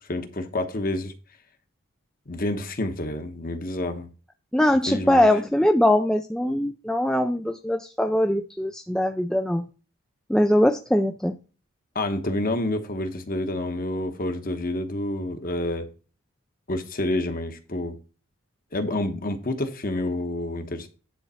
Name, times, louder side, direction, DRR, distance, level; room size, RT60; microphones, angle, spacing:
voice 1, 0.1-1.1 2.3-4.1 4.9-5.3 11.9-15.9 16.7-18.0 18.7-20.9, left 1 dB, 40° left, 1.1 m, -28 dB
voice 2, 4.5-9.6 10.3-11.4, left 1 dB, 5° left, 0.3 m, -22 dB
10.0 x 3.9 x 5.5 m
head